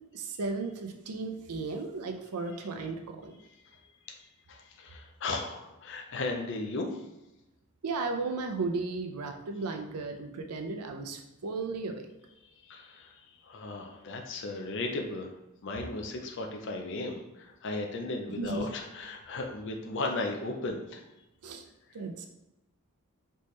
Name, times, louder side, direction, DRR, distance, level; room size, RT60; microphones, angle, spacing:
voice 1, 0.1-3.3 7.8-12.0 18.4-18.6 21.4-21.6 21.9-22.3, right 3 dB, 90° right, 5 dB, 0.6 m, -35 dB
voice 2, 3.5-7.0 12.6-15.3 15.6-21.0, left 2 dB, 55° left, 2 dB, 0.5 m, -36 dB
4.1 x 3.5 x 3.1 m, 0.95 s
head